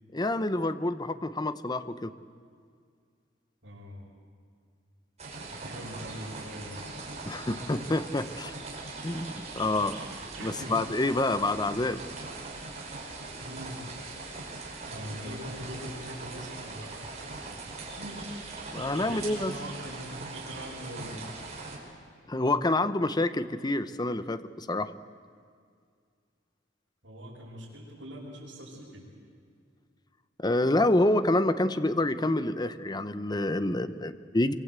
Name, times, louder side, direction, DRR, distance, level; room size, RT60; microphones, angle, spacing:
voice 1, 0.1-2.1 7.3-8.5 9.0-10.0 10.4-12.0 18.7-19.5 22.3-24.9 30.4-34.5, left 2 dB, 20° left, 12 dB, 0.8 m, -27 dB
voice 2, 3.6-4.1 5.5-6.8 10.4-10.8 13.3-13.8 14.8-17.0 17.5-17.6 18.0-18.3 18.9-21.2 27.0-29.0, equal, 75° right, -9 dB, 6.4 m, -42 dB
sound 1, 5.2-21.8, right 3 dB, 35° right, 5.3 m, -41 dB
25.5 x 24.5 x 8.2 m, 2.2 s
head